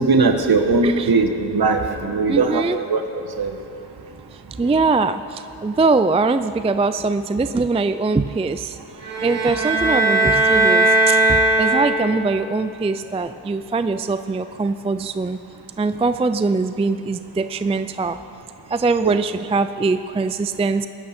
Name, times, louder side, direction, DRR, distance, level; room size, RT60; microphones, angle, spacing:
voice 1, 0.0-2.6 2.9-3.0 3.4-3.5 4.6-4.7 19.0-19.2, right 3 dB, 55° right, 6 dB, 1.3 m, -19 dB
voice 2, 2.3-2.8 4.6-8.8 9.2-15.4 15.8-18.2 18.7-20.9, right 3 dB, 15° right, 11 dB, 0.3 m, -22 dB
sound 1, 9.0-12.2, right 2 dB, 80° right, 3.9 m, -18 dB
20.5 x 11.0 x 4.4 m, 2.9 s
cardioid pair, 70°, 44 cm